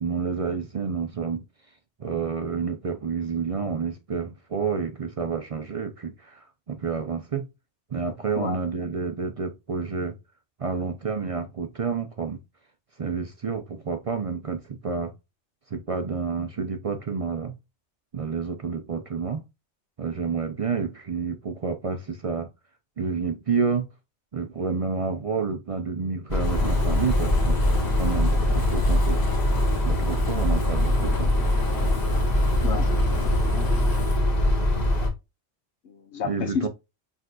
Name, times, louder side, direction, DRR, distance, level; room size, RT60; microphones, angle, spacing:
voice 1, 0.0-1.4 2.0-7.5 7.9-10.2 10.6-12.4 13.0-15.1 15.7-17.5 18.1-19.4 20.0-22.5 23.0-23.9 24.3-27.6 27.9-29.3 29.9-31.3 36.2-36.7, right 5 dB, 55° right, 0.4 m, -29 dB
sound 1, 26.3-35.1, left 1 dB, 40° left, 1.1 m, -22 dB
Fire, 26.4-34.2, left 2 dB, 20° left, 0.8 m, -37 dB
voice 2, 32.6-33.9 34.3-34.4 35.0-35.1 35.8-36.7, left 6 dB, 70° left, 1.1 m, -33 dB
6.3 x 2.7 x 2.3 m
omnidirectional pair, 1.2 m